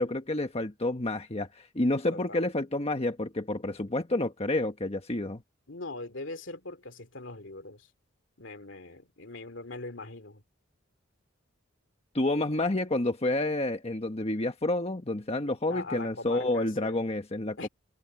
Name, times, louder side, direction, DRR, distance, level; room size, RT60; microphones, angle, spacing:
voice 1, 0.0-5.4 12.1-17.7, left 2 dB, 30° left, 1.3 m, -29 dB
voice 2, 2.1-2.5 5.7-7.9 8.4-10.4 15.7-17.0 17.6-17.7, left 3 dB, 70° left, 2.8 m, -41 dB
head